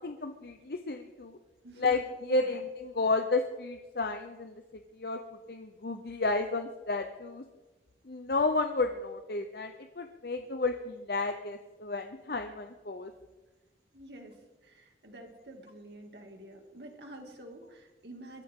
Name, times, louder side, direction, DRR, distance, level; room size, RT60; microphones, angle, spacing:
voice 1, 0.0-1.4 1.8-4.5 5.0-5.2 5.5-7.4 8.1-13.1, left 3 dB, 60° left, 6 dB, 0.8 m, -32 dB
voice 2, 13.9-18.4, right 1 dB, 75° right, 3 dB, 2.5 m, -49 dB
22.5 x 13.5 x 3.7 m, 1.2 s
head